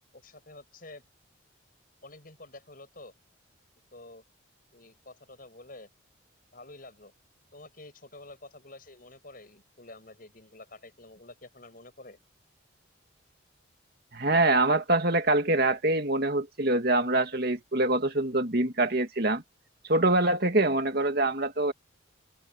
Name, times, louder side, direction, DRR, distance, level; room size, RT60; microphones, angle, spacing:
voice 1, 0.1-1.0 2.0-3.1 3.9-4.2 4.7-5.9 6.5-7.1 7.5-12.2, left 2 dB, 45° left, 7.8 m, -49 dB
voice 2, 14.1-19.4 19.9-21.7, right 2 dB, 50° right, 2.3 m, -24 dB
open air
head